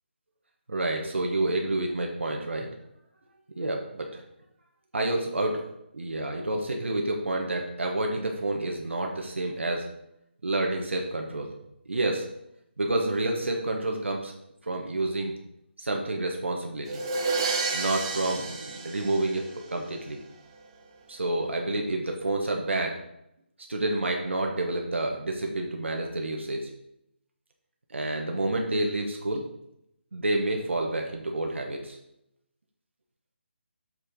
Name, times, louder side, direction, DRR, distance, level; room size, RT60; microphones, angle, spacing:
voice 1, 0.7-2.7 3.6-4.2 4.9-5.6 5.9-9.9 10.4-11.5 11.9-12.3 12.8-14.3 14.7-15.3 15.8-17.0 17.7-20.2 21.1-23.0 23.7-26.7 27.9-29.5 30.1-32.0, right 2 dB, 90° right, 1 dB, 1.4 m, -29 dB
sound 1, 16.9-19.8, right 4 dB, 25° right, 0.9 m, -30 dB
6.8 x 6.8 x 3.8 m, 0.80 s
figure-of-eight pair, 165°, 6 cm